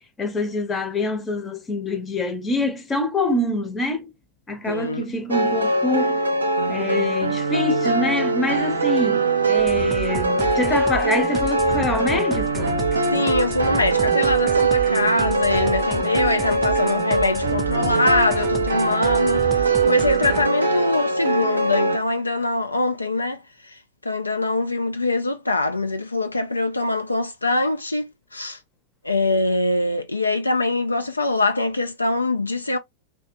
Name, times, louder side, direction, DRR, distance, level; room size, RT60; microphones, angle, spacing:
voice 1, 0.2-4.1 4.5-6.2 6.7-12.8, left 2 dB, 20° left, 0.7 m, -25 dB
voice 2, 4.7-5.1 13.1-28.6 29.0-32.8, left 2 dB, 80° left, 0.3 m, -23 dB
sound 1, 5.3-22.0, right 3 dB, 80° right, 0.5 m, -22 dB
sound 2, 9.6-20.5, right 4 dB, 15° right, 0.4 m, -33 dB
2.7 x 2.2 x 2.4 m
figure-of-eight pair, 90°, 0 cm